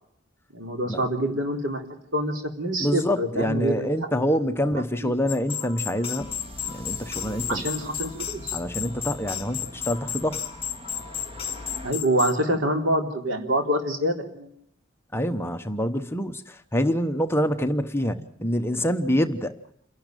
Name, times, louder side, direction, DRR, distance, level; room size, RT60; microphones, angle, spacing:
voice 1, 0.5-1.8 2.1-4.6 5.0-5.1 7.5-8.6 11.8-14.5 18.0-18.2, right 1 dB, 85° right, 2 dB, 3.8 m, -26 dB
voice 2, 2.8-6.3 6.7-7.6 8.5-10.4 15.1-19.5, equal, 15° left, 8 dB, 1.0 m, -26 dB
sound 1, 5.3-12.4, left 9 dB, 30° left, 2.3 m, -33 dB
sound 2, 6.2-11.9, left 1 dB, 30° right, 2.4 m, -42 dB
28.5 x 11.5 x 9.1 m, 0.73 s
head